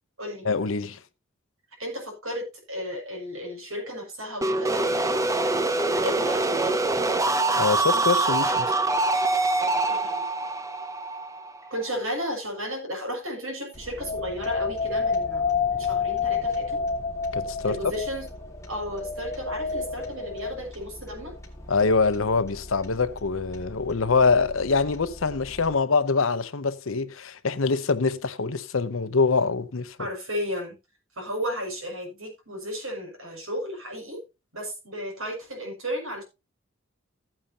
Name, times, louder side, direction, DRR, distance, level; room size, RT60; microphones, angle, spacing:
voice 1, 0.4-1.0 7.5-8.8 17.3-17.8 21.7-30.0, left 4 dB, 75° left, 0.8 m, -24 dB
voice 2, 1.8-6.8 9.9-10.1 11.7-15.4 15.7-16.8 17.6-18.3 18.7-21.3 30.0-30.8 31.2-34.2 34.5-36.2, equal, 85° right, 6.5 m, -34 dB
sound 1, 4.4-12.1, right 2 dB, 15° right, 0.7 m, -24 dB
sound 2, 13.7-25.7, left 1 dB, 15° left, 2.1 m, -44 dB
sound 3, 14.0-20.5, left 5 dB, 30° left, 1.3 m, -29 dB
15.0 x 9.1 x 2.8 m
head